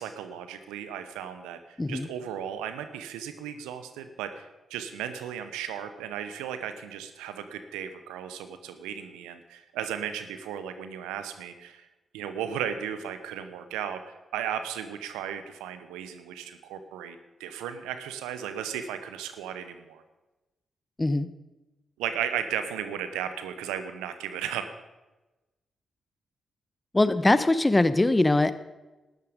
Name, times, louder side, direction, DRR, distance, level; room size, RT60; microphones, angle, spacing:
voice 1, 0.0-1.6 1.9-11.9 12.1-20.0 22.0-24.7, right 9 dB, 85° right, 10 dB, 0.8 m, -35 dB
voice 2, 1.8-2.1 21.0-21.3 26.9-28.5, left 2 dB, 20° left, 13 dB, 1.0 m, -22 dB
13.0 x 11.0 x 5.1 m, 1.1 s
hypercardioid pair, 40°, 0 cm